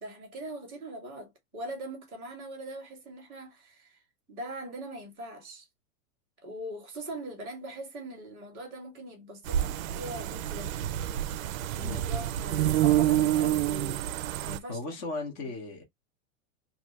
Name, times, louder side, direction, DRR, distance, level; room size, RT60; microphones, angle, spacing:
voice 1, 0.0-4.0 4.3-5.7 6.4-10.7 11.7-14.0 14.4-14.8, right 1 dB, 5° left, 0.3 m, -41 dB
sound 1, 9.5-14.6, right 12 dB, 75° right, 0.5 m, -28 dB
voice 2, 11.8-12.2 14.7-15.8, left 3 dB, 20° left, 0.8 m, -37 dB
2.7 x 2.6 x 2.9 m
supercardioid pair, 175°, 41 cm